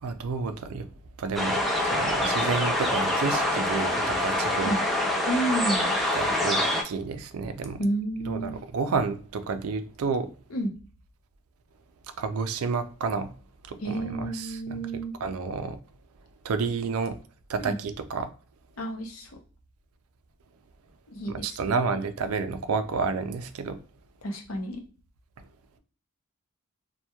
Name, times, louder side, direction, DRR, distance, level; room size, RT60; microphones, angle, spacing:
voice 1, 0.0-0.9 1.2-4.7 5.2-5.3 6.1-7.8 8.2-10.3 12.2-13.3 13.7-14.8 15.2-15.8 16.4-17.2 17.5-18.3 21.4-23.8, right 4 dB, 75° right, 0.4 m, -30 dB
sound 1, 1.4-6.8, left 1 dB, ahead, 0.3 m, -25 dB
voice 2, 5.3-5.9 7.8-8.6 10.5-10.7 13.8-15.1 17.6-17.8 18.8-19.4 21.1-21.8 24.2-24.8, right 1 dB, 65° left, 0.6 m, -30 dB
2.9 x 2.2 x 2.2 m
head